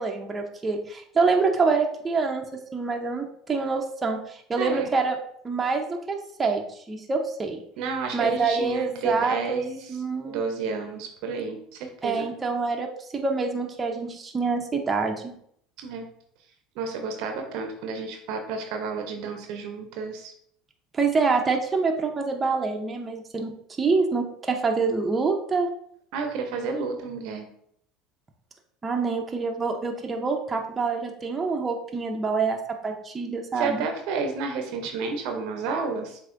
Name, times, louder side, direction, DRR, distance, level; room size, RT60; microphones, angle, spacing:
voice 1, 0.0-5.2 5.4-6.6 6.9-7.6 8.1-9.6 9.9-10.4 12.0-15.3 20.9-25.7 28.8-33.8, right 4 dB, 25° right, 2 dB, 0.8 m, -26 dB
voice 2, 7.8-10.0 10.3-12.2 15.8-16.1 16.8-20.3 26.1-27.5 33.6-36.2, right 4 dB, 65° right, 4 dB, 0.8 m, -31 dB
7.5 x 2.8 x 2.6 m, 0.67 s
hypercardioid pair, 80°, 0 cm